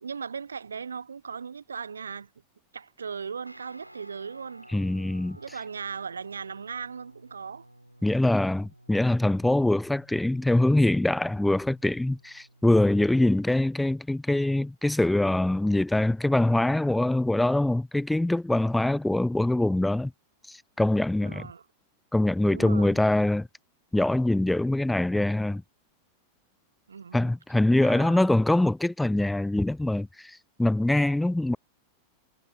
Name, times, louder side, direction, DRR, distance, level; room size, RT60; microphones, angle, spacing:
voice 1, 0.0-2.3 2.7-4.7 5.4-7.6 21.2-21.6 22.4-23.0 26.9-27.3 27.8-28.3, right 6 dB, 70° right, 0.9 m, -38 dB
Guitar, 3.4-13.3, right 1 dB, 90° right, 4.2 m, -54 dB
voice 2, 4.7-5.4 8.0-20.1 20.5-21.5 22.1-23.5 23.9-25.6 27.1-31.6, left 1 dB, 5° left, 0.3 m, -24 dB
figure-of-eight pair, 90°, 0 cm